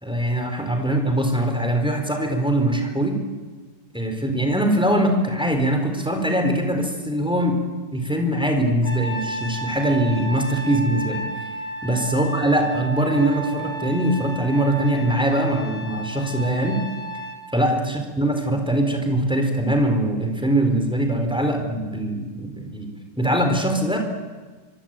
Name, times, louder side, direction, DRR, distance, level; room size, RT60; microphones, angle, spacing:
voice 1, 0.0-3.2 3.9-7.6 7.9-11.3 11.8-16.8 17.5-22.9 23.2-24.0, right 1 dB, ahead, 4 dB, 4.3 m, -22 dB
Trumpet, 8.8-17.4, right 1 dB, 25° left, 3.6 m, -33 dB
24.5 x 24.0 x 9.2 m, 1.4 s
omnidirectional pair, 2.0 m